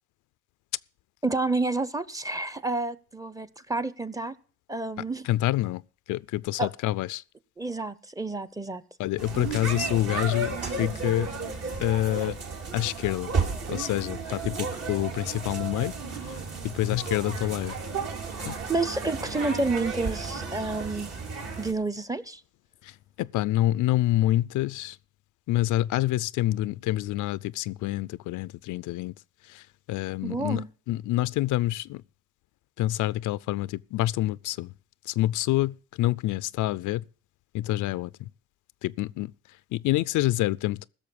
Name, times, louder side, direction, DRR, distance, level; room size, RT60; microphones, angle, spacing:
voice 1, 1.2-4.3 4.7-5.3 6.6-6.7 7.6-8.8 18.7-21.1 21.6-22.4 30.2-30.7, right 3 dB, 10° right, 0.8 m, -29 dB
voice 2, 5.3-5.8 6.1-7.2 9.0-11.3 11.8-12.4 12.7-13.3 13.7-15.9 16.6-17.7 18.5-18.6 23.2-25.0 25.5-29.1 29.5-29.6 29.9-30.6 30.9-32.0 32.8-34.7 35.2-37.0 37.5-38.3 38.8-39.3 39.7-40.9, left 15 dB, 80° left, 0.5 m, -27 dB
sound 1, 9.2-21.7, right 4 dB, 55° right, 3.0 m, -33 dB
16.0 x 6.6 x 6.9 m
cardioid pair, 90°, 30 cm